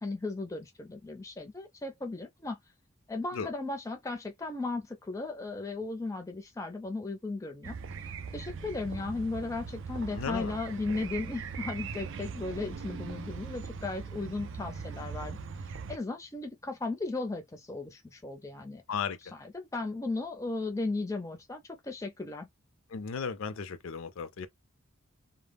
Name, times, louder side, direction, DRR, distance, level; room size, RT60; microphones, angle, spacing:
voice 1, 0.0-2.6 3.1-7.8 8.3-15.4 15.9-18.8 19.5-22.5, left 3 dB, 15° left, 0.4 m, -36 dB
sound 1, 7.6-16.0, right 5 dB, 60° right, 0.3 m, -40 dB
voice 2, 10.1-10.5 18.9-19.3 22.9-24.5, left 6 dB, 70° left, 0.4 m, -35 dB
2.1 x 2.0 x 3.3 m
head